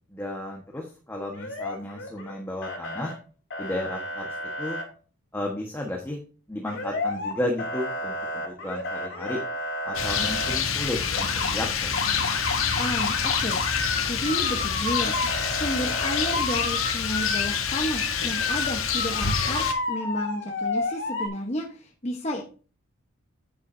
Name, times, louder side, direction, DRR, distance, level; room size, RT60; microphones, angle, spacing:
voice 1, 0.1-3.1 3.6-4.8 5.3-6.2 6.5-9.4 9.8-12.1, left 1 dB, 10° left, 0 dB, 1.3 m, -33 dB
Motor vehicle (road) / Siren, 1.3-2.3 2.6-3.1 3.5-4.8 6.7-7.3 7.6-10.6 11.0-11.5 11.9-21.3, left 2 dB, 55° left, 2.8 m, -31 dB
Rain, 9.9-19.7, left 6 dB, 75° left, 1.3 m, -27 dB
voice 2, 12.8-13.6 14.0-15.2 15.5-22.4, left 1 dB, 30° left, 1 dB, 1.1 m, -31 dB
9.4 x 8.8 x 2.7 m, 0.37 s
head